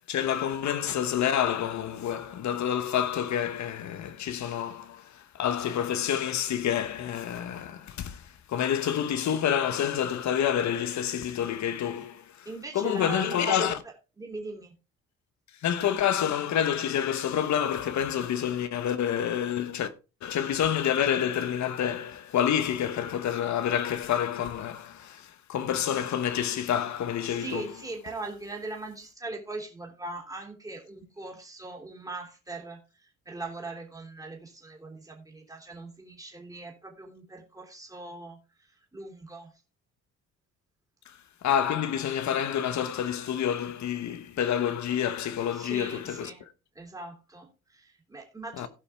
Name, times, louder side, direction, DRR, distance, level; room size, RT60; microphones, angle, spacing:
voice 1, 0.1-12.5 12.7-13.8 15.6-19.9 20.2-27.7 41.4-46.3 48.6-48.7, left 9 dB, 70° left, 1.2 m, -28 dB
voice 2, 12.4-14.7 27.3-39.5 45.5-46.4 46.7-48.7, right 2 dB, 10° right, 3.1 m, -40 dB
17.0 x 5.7 x 3.5 m
cardioid pair, 90°, 30 cm